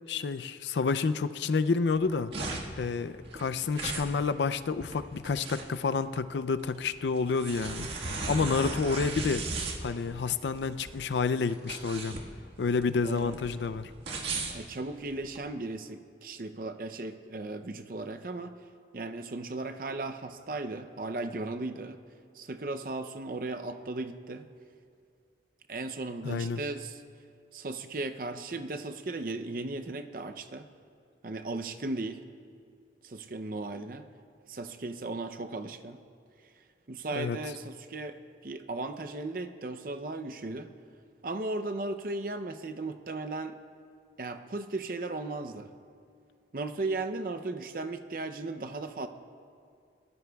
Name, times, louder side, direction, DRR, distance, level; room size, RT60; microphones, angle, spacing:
voice 1, 0.1-2.3 2.8-12.2 12.6-13.9 26.2-26.6 37.1-37.4, left 4 dB, 80° left, 12 dB, 0.4 m, -29 dB
sound 1, 1.9-15.4, right 3 dB, 85° right, 1.6 m, -37 dB
voice 2, 13.0-13.3 14.5-18.6 18.9-22.0 22.4-24.5 25.7-27.0 27.5-30.7 31.2-32.2 33.0-34.0 34.5-36.0 36.9-38.2 38.4-40.7 41.2-43.6 44.2-45.7 46.5-49.1, right 2 dB, 50° right, 7 dB, 0.6 m, -36 dB
22.0 x 18.0 x 2.3 m, 2.3 s
head